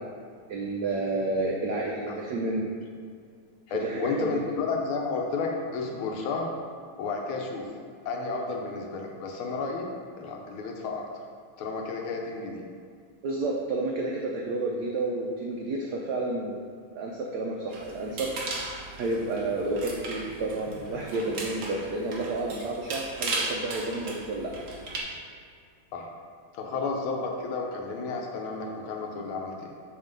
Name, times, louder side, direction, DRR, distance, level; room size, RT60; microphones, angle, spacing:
voice 1, 0.5-2.7 3.8-4.4 13.2-18.3 19.0-24.5, right 2 dB, 80° right, -1 dB, 0.9 m, -30 dB
voice 2, 3.7-6.5 7.0-7.7 8.0-9.9 10.2-11.0 11.6-12.6 25.9-26.1 26.5-29.7, left 4 dB, 75° left, 1 dB, 1.6 m, -32 dB
sound 1, 17.7-25.0, right 3 dB, 55° right, 1.0 m, -36 dB
7.1 x 2.9 x 5.2 m, 2.1 s
omnidirectional pair, 2.4 m